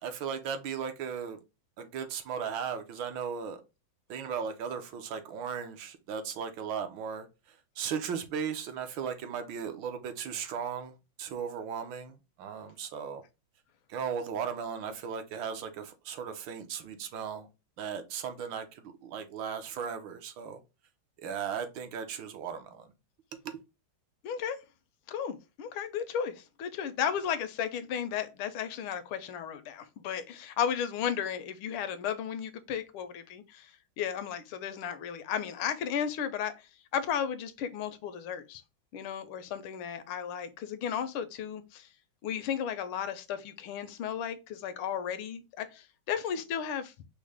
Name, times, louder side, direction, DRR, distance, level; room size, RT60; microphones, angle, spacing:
voice 1, 0.0-1.4 1.8-3.6 4.1-13.2 13.9-17.5 17.8-20.6 21.2-22.9 23.4-23.6, right 7 dB, 70° right, 1.4 m, -37 dB
voice 2, 24.2-24.6 25.1-33.7 34.0-38.6 38.9-41.9 42.2-46.9, left 8 dB, 90° left, 1.5 m, -34 dB
5.3 x 2.1 x 4.7 m
omnidirectional pair, 2.3 m